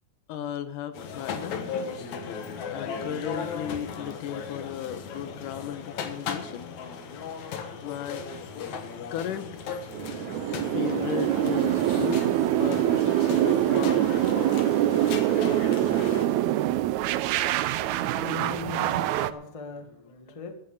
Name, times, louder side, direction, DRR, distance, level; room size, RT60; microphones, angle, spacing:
voice 1, 0.3-1.6 2.7-7.0 7.8-8.3 9.1-9.5 10.7-14.7, left 9 dB, 85° left, 11 dB, 2.5 m, -35 dB
sound 1, 0.9-16.3, left 6 dB, 65° left, 2.5 m, -36 dB
sound 2, 9.9-19.3, right 13 dB, 75° right, 1.8 m, -24 dB
voice 2, 17.0-20.5, left 5 dB, 25° left, 5 dB, 0.7 m, -41 dB
13.5 x 9.3 x 6.6 m, 0.73 s
omnidirectional pair, 3.7 m